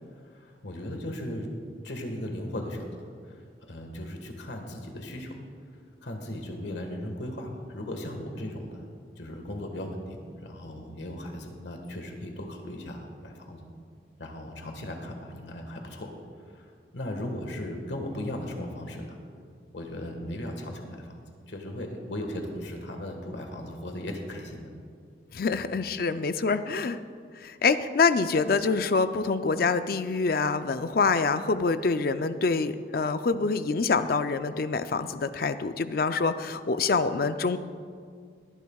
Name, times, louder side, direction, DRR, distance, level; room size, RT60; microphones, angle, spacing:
voice 1, 0.4-1.5 1.8-3.1 3.7-5.4 6.0-8.8 9.2-13.6 14.2-16.1 16.9-19.2 19.7-21.0 21.5-24.7 25.5-25.6, left 1 dB, 85° left, 3 dB, 1.6 m, -37 dB
voice 2, 25.3-27.0 27.4-37.6, left 4 dB, 55° left, 11 dB, 0.4 m, -26 dB
21.0 x 11.0 x 2.4 m, 2.1 s
head